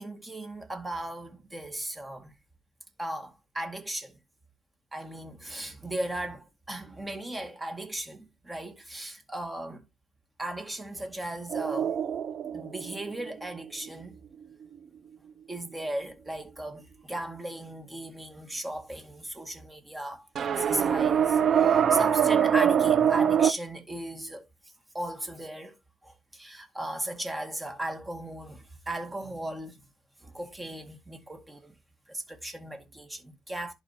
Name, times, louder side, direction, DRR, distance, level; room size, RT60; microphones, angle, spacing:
voice 1, 0.0-2.3 3.0-4.2 4.9-9.8 10.4-12.0 12.5-14.1 15.5-24.5 24.9-25.8 26.0-29.8 30.2-31.7 32.1-33.7, right 1 dB, 15° right, 2.0 m, -37 dB
sound 1, 11.5-13.9 20.4-23.5, right 8 dB, 55° right, 0.6 m, -24 dB
11.0 x 4.8 x 2.8 m
cardioid pair, 90°, 0 cm